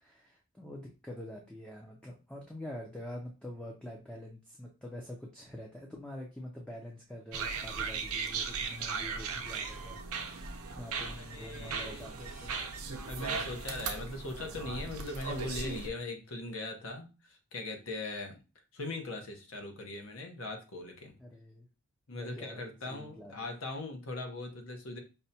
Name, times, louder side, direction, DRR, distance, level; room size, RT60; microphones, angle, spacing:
voice 1, 0.0-12.5 21.2-21.7 22.1-23.5, left 1 dB, 5° left, -2 dB, 0.4 m, -46 dB
sound 1, 7.3-15.9, right 5 dB, 80° right, 0.6 m, -37 dB
voice 2, 10.8-12.2 13.1-18.4 18.7-21.2 22.1-25.0, left 2 dB, 65° left, 3 dB, 0.9 m, -40 dB
5.3 x 2.2 x 2.7 m, 0.30 s
head